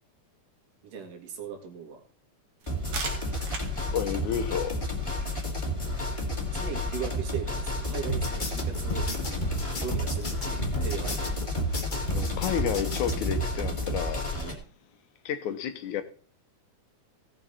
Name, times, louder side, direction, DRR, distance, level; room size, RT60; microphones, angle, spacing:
voice 1, 0.8-2.0 6.3-9.1 9.8-11.4, right 6 dB, 85° right, 3.5 m, -38 dB
sound 1, 2.6-8.1, right 4 dB, 60° right, 2.7 m, -43 dB
sound 2, 2.7-14.5, left 1 dB, 10° left, 2.4 m, -31 dB
voice 2, 3.9-4.8 12.1-14.3 15.3-16.0, left 9 dB, 75° left, 2.2 m, -31 dB
sound 3, 8.1-13.4, equal, 55° left, 0.5 m, -32 dB
17.0 x 7.1 x 4.1 m
omnidirectional pair, 3.6 m